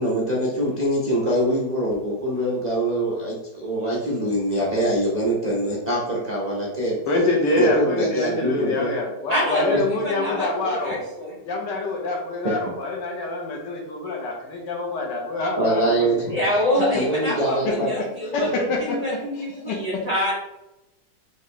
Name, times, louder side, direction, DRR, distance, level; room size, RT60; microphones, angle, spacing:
voice 1, 0.0-7.0 7.6-8.9 9.7-9.8 15.6-17.9 18.4-18.5, right 1 dB, 65° right, -5 dB, 0.4 m, -24 dB
voice 2, 7.1-11.0 11.4-16.1 17.6-18.1 18.3-20.0, left 2 dB, 75° left, 1 dB, 1.6 m, -26 dB
voice 3, 9.3-11.4 16.3-20.3, left 1 dB, 30° right, -6 dB, 0.9 m, -26 dB
4.8 x 2.8 x 3.2 m, 0.94 s
omnidirectional pair, 1.9 m